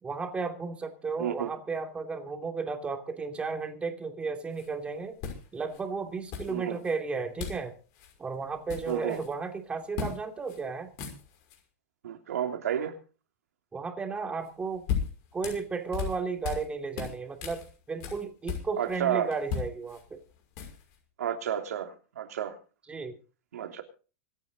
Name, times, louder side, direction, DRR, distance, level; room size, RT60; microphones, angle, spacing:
voice 1, 0.0-5.2 5.5-7.7 8.2-10.9 13.7-14.8 15.3-20.2 22.9-23.2, right 4 dB, 15° right, 5 dB, 2.7 m, -34 dB
voice 2, 1.2-1.5 6.5-6.8 8.9-9.2 12.0-12.9 18.8-19.3 21.2-22.6 23.5-23.8, right 9 dB, 90° right, 5 dB, 3.0 m, -31 dB
sound 1, 4.5-4.7 5.2-5.8 6.3-6.9 7.4-7.7 7.9-8.1 8.4-9.3 9.9-10.2 10.5-10.6 10.9-11.6 14.4-16.7 16.9-19.0 19.3-21.0, left 7 dB, 50° left, 5.8 m, -36 dB
25.5 x 9.4 x 3.9 m, 0.37 s
supercardioid pair, 135°, 8 cm